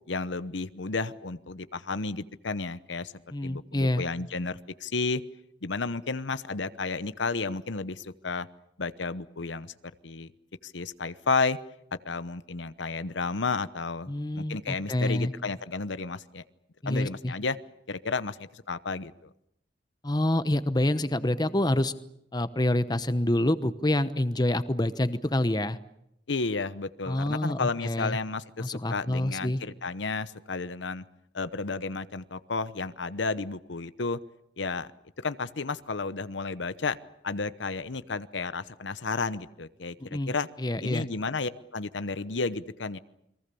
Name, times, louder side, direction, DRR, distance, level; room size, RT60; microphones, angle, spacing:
voice 1, 0.1-3.1 3.4-5.2 5.6-8.5 8.8-9.7 10.0-10.3 10.6-11.6 12.0-16.4 16.8-17.6 17.9-19.3 26.3-31.0 31.3-34.2 34.6-34.9 35.2-37.0 37.2-40.5 40.8-43.0, left 4 dB, 80° left, 14 dB, 1.0 m, -32 dB
voice 2, 3.3-4.0 14.1-15.3 16.8-17.3 20.0-21.9 22.3-25.8 27.1-28.2 28.6-29.6 40.0-40.3 40.6-41.1, left 1 dB, 20° left, 12 dB, 1.0 m, -27 dB
29.0 x 22.5 x 7.0 m, 0.78 s
head